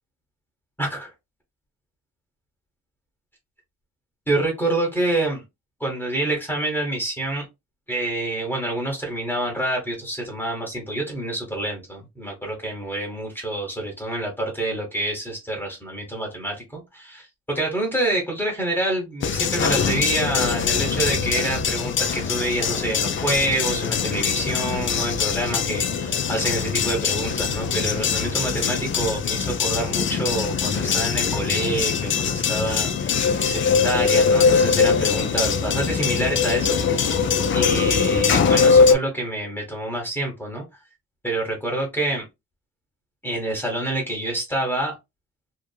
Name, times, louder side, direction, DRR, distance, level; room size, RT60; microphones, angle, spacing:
voice 1, 0.8-1.1 4.3-5.4 5.8-7.4 7.9-33.1 33.4-37.2 37.5-40.6 41.2-42.2 43.2-44.9, right 1 dB, 5° left, 0 dB, 1.1 m, -27 dB
sound 1, 19.2-38.9, left 6 dB, 40° left, 0.5 m, -22 dB
2.8 x 2.4 x 2.2 m, 0.22 s
cardioid pair, 90°, 30 cm